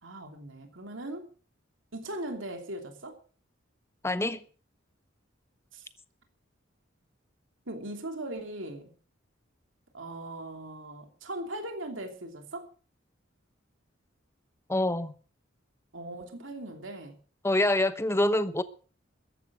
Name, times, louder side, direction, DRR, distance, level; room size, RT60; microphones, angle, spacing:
voice 1, 0.0-1.3 1.9-3.2 5.7-5.9 7.7-8.9 9.9-12.7 15.9-17.1, right 1 dB, 70° right, 2.9 m, -39 dB
voice 2, 4.0-4.4 14.7-15.1 17.4-18.6, left 1 dB, 15° left, 1.0 m, -26 dB
14.5 x 11.0 x 6.3 m
head